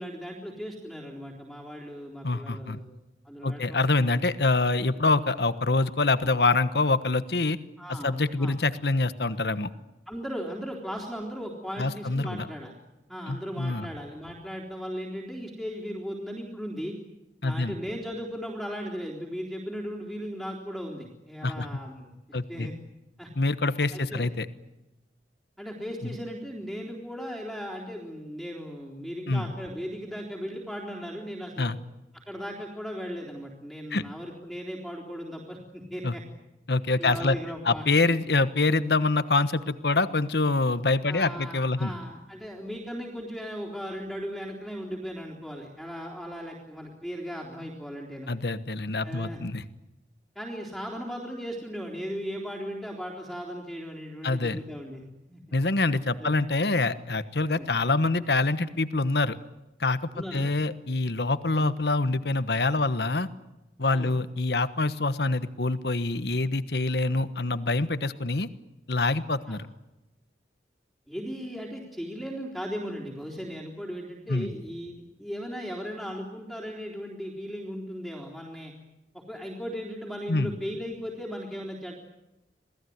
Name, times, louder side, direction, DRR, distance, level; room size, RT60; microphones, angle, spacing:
voice 1, 0.0-2.9 3.2-3.8 7.8-8.6 10.1-12.7 13.1-16.9 17.4-22.7 23.2-23.3 23.9-24.3 25.6-31.7 32.3-36.2 37.0-37.9 41.1-48.3 49.0-49.4 50.4-55.0 55.3-55.4 56.2-56.3 57.5-57.7 60.1-60.5 63.9-64.1 67.1-67.2 69.5-69.6 71.1-78.7 79.1-81.9, equal, ahead, -3 dB, 3.8 m, -37 dB
voice 2, 2.2-2.8 3.4-7.6 7.9-9.7 11.8-12.5 13.3-13.9 17.4-17.7 21.4-21.7 22.3-22.7 23.4-24.5 26.0-26.1 29.3-29.5 31.6-31.8 33.9-34.0 36.0-36.1 36.7-37.4 37.6-41.9 48.3-49.6 54.2-54.6 55.5-59.4 59.8-63.3 63.8-68.5 68.9-69.7 74.3-74.5 80.3-80.5, left 3 dB, 70° left, 13 dB, 1.3 m, -25 dB
27.5 x 19.0 x 9.5 m, 0.97 s
head